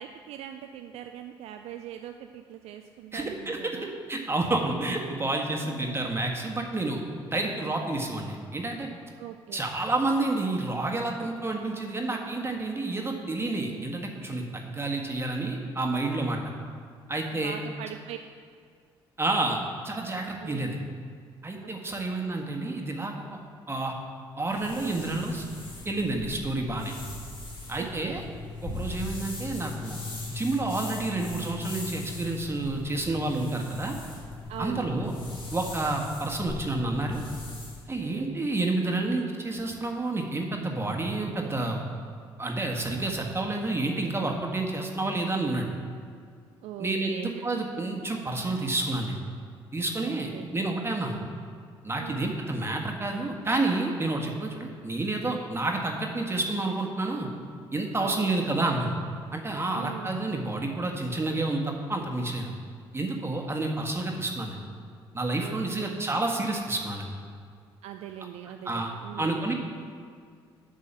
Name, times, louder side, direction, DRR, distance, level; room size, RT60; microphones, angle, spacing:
voice 1, 0.0-4.0 5.6-6.1 9.2-9.7 17.3-18.2 20.4-20.9 21.6-22.0 27.7-28.2 34.5-35.1 38.0-38.4 46.6-47.5 50.0-50.5 52.0-52.4 58.0-58.3 59.7-60.1 65.4-66.0 67.8-69.5, right 11 dB, 55° right, 6 dB, 0.4 m, -41 dB
voice 2, 3.1-3.6 4.1-7.0 7.2-8.9 9.5-16.4 17.1-17.5 19.2-20.8 21.4-23.2 23.7-23.9 24.4-25.4 25.8-27.0 27.7-28.2 28.6-34.0 34.6-35.1 35.5-37.2 37.9-41.8 42.4-45.7 46.8-49.2 49.7-51.2 51.8-57.3 57.7-59.0 59.3-62.5 62.9-64.6 65.1-67.1 68.6-68.9 69.2-69.5, right 2 dB, 20° right, 1 dB, 1.6 m, -29 dB
sound 1, 24.5-37.8, left 3 dB, 45° left, 2.3 m, -39 dB
8.3 x 6.4 x 7.1 m, 2.1 s
figure-of-eight pair, 45°, 13 cm